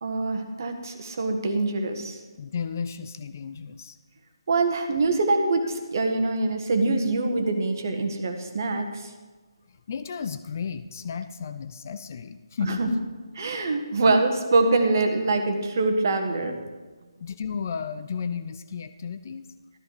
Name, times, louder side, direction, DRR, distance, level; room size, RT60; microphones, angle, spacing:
voice 1, 0.0-2.2 4.5-9.1 12.6-12.9 13.3-16.6, right 3 dB, 40° right, 6 dB, 1.6 m, -24 dB
voice 2, 2.4-4.0 9.9-12.8 17.2-19.5, left 6 dB, 35° left, 11 dB, 0.5 m, -33 dB
13.5 x 13.5 x 4.7 m, 1.3 s
figure-of-eight pair, 150°, 3 cm